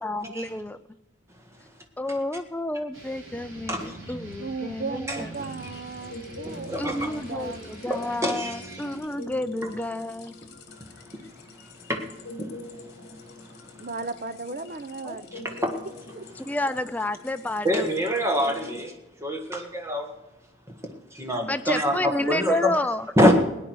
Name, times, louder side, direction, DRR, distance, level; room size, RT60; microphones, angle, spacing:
voice 1, 0.0-0.8 2.0-5.3 6.8-10.4 15.0-15.2 16.4-17.8 21.5-23.1, left 1 dB, 5° left, 11 dB, 0.4 m, -30 dB
sound 1, 2.9-9.0, right 1 dB, 75° right, 5.8 m, -43 dB
voice 2, 4.4-7.6 13.8-15.5 16.2-16.3, right 3 dB, 40° right, 11 dB, 0.7 m, -36 dB
sound 2, 5.3-18.9, left 2 dB, 50° left, 1.8 m, -45 dB
voice 3, 6.7-7.1 7.9-8.8 11.9-12.0 12.4-12.5 15.3-15.7 17.6-18.9 19.2-20.1 21.1-22.8 23.2-23.4, equal, 15° right, 3 dB, 1.5 m, -25 dB
18.0 x 9.8 x 4.7 m, 0.96 s
head